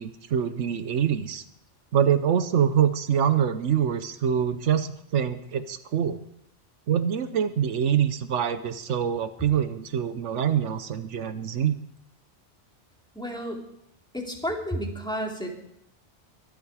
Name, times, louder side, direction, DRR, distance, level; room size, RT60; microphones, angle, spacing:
voice 1, 0.0-1.4 1.9-6.2 6.9-11.8, right 8 dB, 80° right, 11 dB, 1.1 m, -25 dB
voice 2, 13.1-13.6 14.1-15.5, equal, 5° left, -1 dB, 2.8 m, -31 dB
24.0 x 8.8 x 4.8 m, 0.77 s
omnidirectional pair, 1.2 m